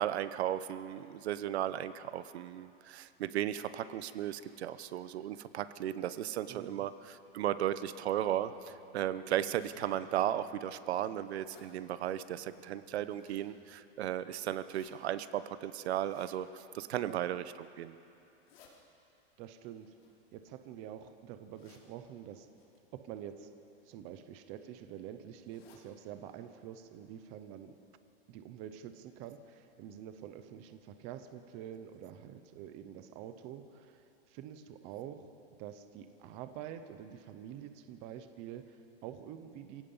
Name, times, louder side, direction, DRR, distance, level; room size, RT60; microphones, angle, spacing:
voice 1, 0.0-17.4 17.8-18.0, right 11 dB, 80° right, 13 dB, 0.9 m, -35 dB
voice 2, 6.5-6.9 17.0-17.2 19.4-20.0 20.3-22.5 22.9-23.5 23.9-27.8 28.3-35.3 35.6-39.8, right 10 dB, 20° right, 9 dB, 0.6 m, -47 dB
sound 1, 8.4-13.4, left 8 dB, 45° left, 2.3 m, -65 dB
sound 2, 9.5-9.8 10.4-10.5 10.9-11.7 12.8-13.5 14.5-14.9 15.9-16.3 17.1-17.5 18.2-18.7 19.8-20.8 21.5-21.9 22.6-22.8 23.8-24.1 24.4-24.5 24.8-24.9 25.4-25.9 26.3-26.4 26.7-26.8 27.3-27.4 27.7-27.8, left 6 dB, 65° left, 4.1 m, -63 dB
27.5 x 17.0 x 5.5 m, 2.7 s
supercardioid pair, 180°, 32 cm